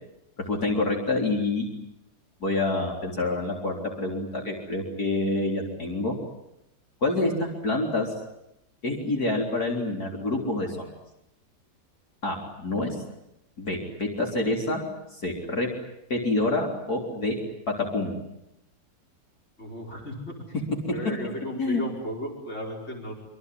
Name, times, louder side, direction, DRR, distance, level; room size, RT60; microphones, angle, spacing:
voice 1, 0.5-1.6 2.4-6.1 7.0-8.1 8.8-10.9 12.2-13.0 13.6-14.8 15.1-15.7 16.1-17.4 17.7-18.1 21.6-21.8, left 2 dB, 60° left, 0 dB, 4.3 m, -27 dB
voice 2, 19.6-20.4 20.9-23.1, equal, 40° left, 1 dB, 5.4 m, -35 dB
25.5 x 24.5 x 9.5 m, 0.84 s
omnidirectional pair, 1.9 m